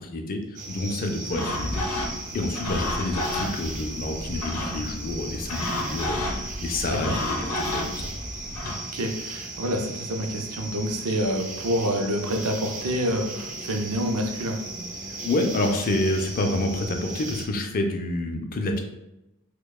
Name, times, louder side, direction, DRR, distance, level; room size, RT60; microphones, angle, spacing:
voice 1, 0.0-1.8 2.3-8.1 15.2-18.8, left 2 dB, 40° left, 4 dB, 0.4 m, -28 dB
sound 1, 0.6-17.5, right 2 dB, 35° right, 0.5 m, -37 dB
sound 2, 1.3-8.8, left 1 dB, 85° left, 0.6 m, -31 dB
voice 2, 6.9-7.2 8.9-14.6, equal, 80° right, 3 dB, 0.5 m, -27 dB
4.7 x 2.2 x 2.3 m, 0.92 s
head